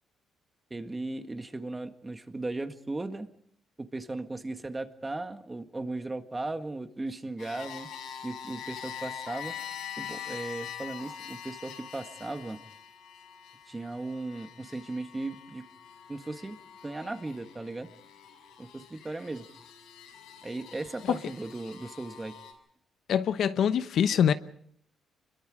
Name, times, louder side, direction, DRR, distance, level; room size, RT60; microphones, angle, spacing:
voice 1, 0.7-3.3 3.8-7.9 8.2-9.5 10.0-12.6 13.7-15.6 16.1-16.6 16.8-17.9 18.6-19.5 20.4-22.4, right 2 dB, 20° right, 1.7 m, -37 dB
sound 1, 7.4-22.5, left 8 dB, 85° left, 6.4 m, -44 dB
voice 2, 23.1-24.3, left 8 dB, 70° left, 1.0 m, -24 dB
26.0 x 22.5 x 5.0 m
cardioid pair, 90°, 0 cm